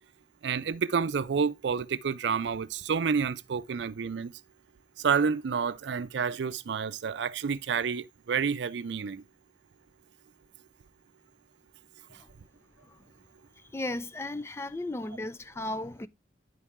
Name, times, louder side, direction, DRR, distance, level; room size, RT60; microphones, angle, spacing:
voice 1, 0.4-4.3 5.0-9.2, right 6 dB, 80° right, 0.4 m, -29 dB
voice 2, 13.7-16.1, left 2 dB, 15° left, 0.3 m, -35 dB
9.9 x 4.2 x 3.5 m
head